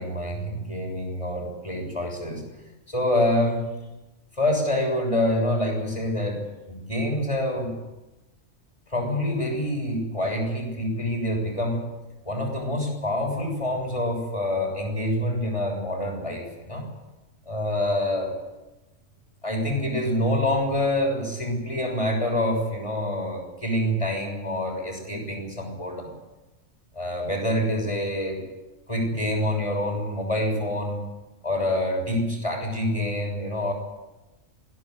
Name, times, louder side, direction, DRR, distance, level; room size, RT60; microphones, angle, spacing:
voice 1, 0.0-2.4 2.9-3.7 4.4-7.7 8.9-11.8 12.2-16.8 17.5-18.3 19.4-26.1 26.9-28.4 28.9-31.0 31.4-33.7, left 1 dB, 25° left, 2 dB, 6.6 m, -26 dB
21.5 x 16.5 x 9.6 m, 1.0 s
omnidirectional pair, 1.2 m